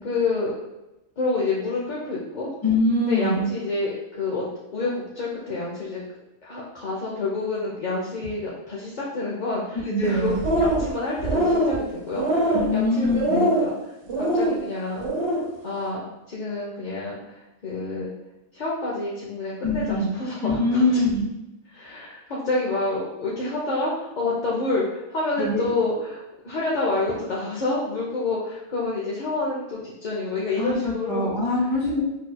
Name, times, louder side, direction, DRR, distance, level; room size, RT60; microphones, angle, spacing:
voice 1, 0.0-0.5 1.2-2.5 3.0-4.4 4.7-6.0 6.4-13.7 14.2-15.1 15.6-18.1 18.5-20.9 21.7-31.4, left 3 dB, 45° left, -6 dB, 0.6 m, -28 dB
voice 2, 2.6-3.5 9.9-10.4 12.5-13.4 19.6-20.1 20.4-21.3 25.4-25.7 30.6-32.0, left 2 dB, 20° left, -6 dB, 1.4 m, -23 dB
sound 1, 10.2-10.9 11.2-11.8 12.1-12.7 13.2-13.7 14.1-14.5 15.0-15.4, right 1 dB, 35° right, 0.5 m, -22 dB
6.0 x 3.1 x 2.2 m, 0.96 s
omnidirectional pair, 1.5 m